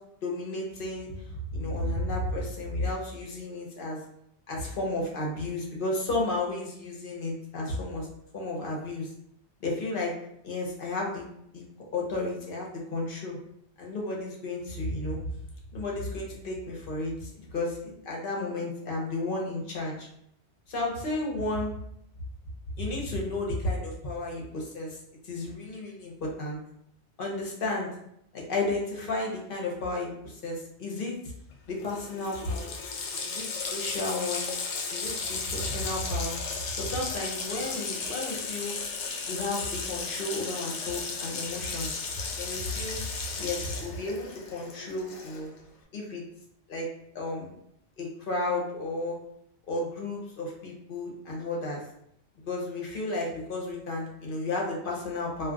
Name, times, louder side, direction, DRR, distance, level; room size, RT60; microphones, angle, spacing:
voice 1, 0.2-4.0 4.5-8.1 8.3-9.1 9.6-10.1 10.4-11.3 11.5-11.6 11.9-13.4 13.8-15.3 15.7-20.1 20.7-21.8 22.7-25.0 25.2-26.6 27.2-27.9 28.3-31.2 31.7-32.7 33.2-34.5 34.9-36.4 36.7-38.8 39.3-43.0 43.4-45.5 45.9-46.2 46.7-46.9 47.1-47.5 48.0-49.2 49.7-51.8 52.5-55.5, left 2 dB, 55° left, -2 dB, 0.9 m, -33 dB
Water tap faucet, 31.5-31.6 31.8-45.6, left 4 dB, 85° left, 0.9 m, -35 dB
2.5 x 2.3 x 3.7 m, 0.74 s
omnidirectional pair, 1.2 m